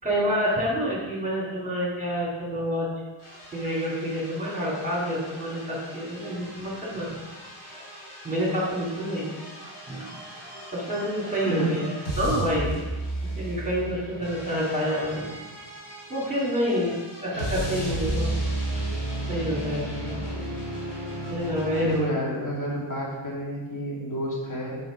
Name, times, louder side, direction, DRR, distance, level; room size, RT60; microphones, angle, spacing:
voice 1, 0.0-2.9 3.5-7.1 7.7-7.8 8.2-9.3 9.9-10.1 10.7-12.8 13.4-15.2 16.1-18.3 19.3-20.1 21.3-22.0, equal, 15° right, -6 dB, 2.5 m, -28 dB
sound 1, 3.2-22.0, right 1 dB, 90° left, 2.7 m, -34 dB
voice 2, 11.3-12.1 21.8-24.8, equal, 40° left, -4 dB, 2.4 m, -30 dB
7.6 x 5.4 x 5.1 m, 1.2 s
wide cardioid pair, 105°, 49 cm